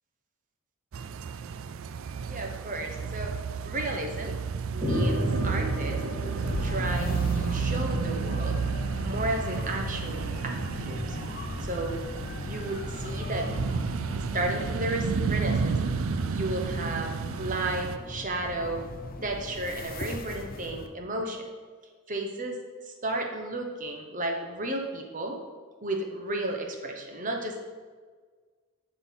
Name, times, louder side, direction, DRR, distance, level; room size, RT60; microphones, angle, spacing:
sound 1, 0.9-18.0, right 5 dB, 60° right, 0.4 m, -32 dB
voice 1, 2.2-3.3 3.6-4.3 4.7-6.0 6.6-8.6 9.0-11.2 11.6-11.9 12.4-13.6 14.1-15.8 16.3-18.8 19.2-21.5 22.1-22.6 22.9-25.4 25.8-27.7, right 2 dB, 35° right, 2 dB, 1.1 m, -33 dB
sound 2, 4.8-9.5, equal, 5° right, 2.3 m, -32 dB
sound 3, 6.4-20.9, left 2 dB, 40° left, 0.6 m, -37 dB
11.0 x 4.1 x 5.7 m, 1.5 s
head